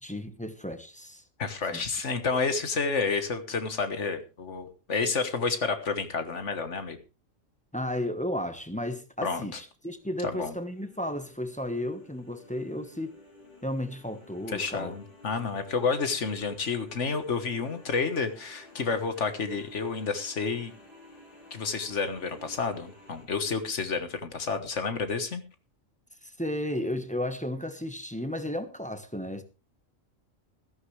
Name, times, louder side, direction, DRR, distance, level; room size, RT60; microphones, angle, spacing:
voice 1, 0.0-1.2 1.7-1.8 7.7-13.2 13.6-14.9 26.2-29.4, left 1 dB, 5° left, 1.1 m, -33 dB
voice 2, 1.4-7.0 9.2-9.6 10.2-10.5 14.5-20.7 21.5-25.4, left 4 dB, 65° left, 1.7 m, -30 dB
sound 1, 9.9-23.3, left 1 dB, 40° left, 5.1 m, -53 dB
15.5 x 13.0 x 3.3 m
omnidirectional pair, 1.4 m